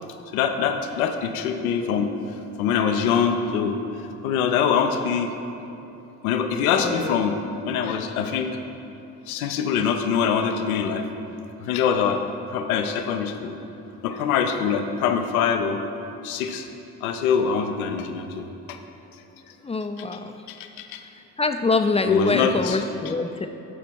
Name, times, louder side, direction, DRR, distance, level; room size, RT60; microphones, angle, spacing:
voice 1, 0.3-2.1 2.6-3.8 4.2-5.3 6.2-8.6 9.3-11.1 11.6-12.2 12.5-13.6 14.0-15.8 16.2-16.7 17.0-18.8 20.0-20.1 20.5-21.0 22.1-22.8, left 7 dB, 80° left, 6 dB, 0.7 m, -24 dB
voice 2, 6.8-7.1 19.6-20.3 21.4-23.5, left 3 dB, 15° left, 7 dB, 0.4 m, -24 dB
12.5 x 5.2 x 4.5 m, 2.9 s
hypercardioid pair, 55°, 42 cm